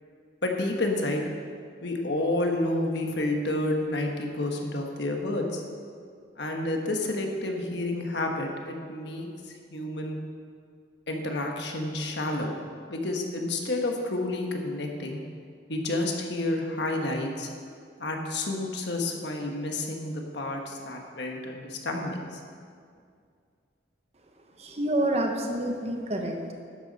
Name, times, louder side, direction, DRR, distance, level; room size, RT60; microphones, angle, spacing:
voice 1, 0.4-1.2 1.8-5.6 6.4-9.3 9.7-10.2 11.1-12.5 12.9-15.2 15.7-17.5 18.0-22.4, left 2 dB, 65° left, 2 dB, 1.3 m, -30 dB
voice 2, 24.6-26.5, right 1 dB, 35° right, 3 dB, 1.0 m, -28 dB
11.5 x 9.3 x 4.1 m, 2.2 s
head